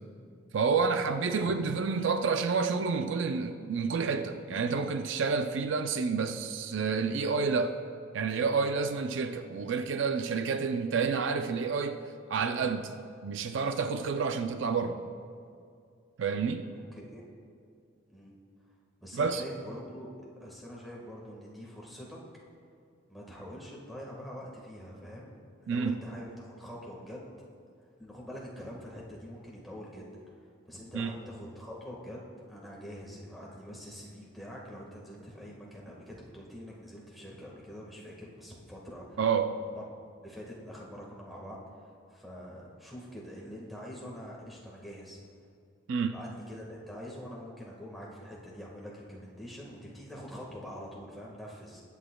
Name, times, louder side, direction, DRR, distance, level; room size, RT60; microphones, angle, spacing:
voice 1, 0.5-7.8 8.1-12.0 12.3-12.9 13.2-15.0 16.2-16.7 19.1-19.4 25.7-26.0 30.9-31.1 39.2-39.6 45.9-46.2, right 5 dB, 65° right, 7 dB, 0.4 m, -29 dB
voice 2, 16.9-17.2 18.1-18.3 19.0-20.1 20.4-22.2 23.1-25.3 25.6-27.3 28.0-30.1 30.4-39.2 39.5-39.8 40.2-45.2 46.1-51.8, equal, ahead, -3 dB, 1.5 m, -45 dB
19.5 x 8.3 x 2.3 m, 2.3 s
head